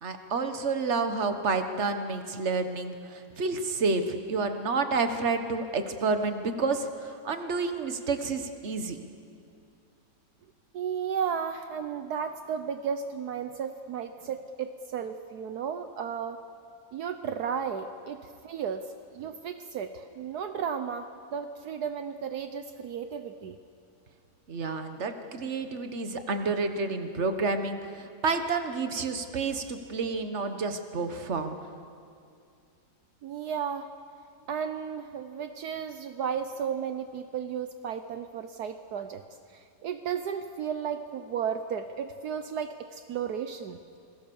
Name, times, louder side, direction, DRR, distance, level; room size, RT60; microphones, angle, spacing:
voice 1, 0.0-9.1 24.5-31.6, right 4 dB, 45° right, 7 dB, 1.7 m, -30 dB
voice 2, 10.7-16.4 16.9-23.6 33.2-33.9 34.5-39.2 39.5-43.8, right 7 dB, 75° right, 8 dB, 1.4 m, -34 dB
28.0 x 21.0 x 7.1 m, 2.4 s
omnidirectional pair, 1.8 m